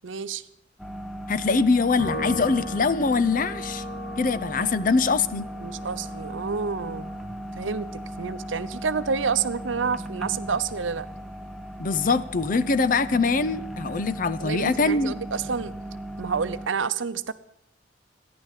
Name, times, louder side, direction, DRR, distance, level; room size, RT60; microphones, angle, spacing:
voice 1, 0.0-0.4 5.6-7.1 7.6-11.1 14.4-15.7 16.2-17.3, right 5 dB, 85° right, 14 dB, 0.7 m, -29 dB
sound 1, 0.8-16.7, right 1 dB, ahead, 0.7 m, -37 dB
voice 2, 1.3-3.8 4.2-5.5 11.8-15.1, left 4 dB, 45° left, 14 dB, 0.6 m, -23 dB
Piano, 2.0-8.6, left 1 dB, 80° left, 6.9 m, -39 dB
14.5 x 10.5 x 7.5 m, 0.76 s
head